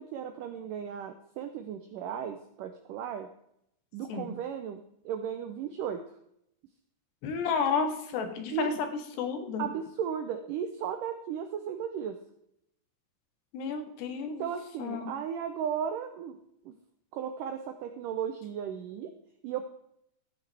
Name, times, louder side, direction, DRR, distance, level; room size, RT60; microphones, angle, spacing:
voice 1, 0.0-3.3 3.9-6.2 8.5-8.7 9.6-12.2 14.4-16.4 16.7-16.8 17.1-19.1 19.4-19.6, right 8 dB, 85° right, 7 dB, 1.9 m, -35 dB
voice 2, 7.2-8.9 9.2-9.7 13.5-14.5 14.8-15.1, left 5 dB, 85° left, 5 dB, 3.6 m, -31 dB
14.0 x 9.0 x 3.4 m, 0.74 s
omnidirectional pair, 4.7 m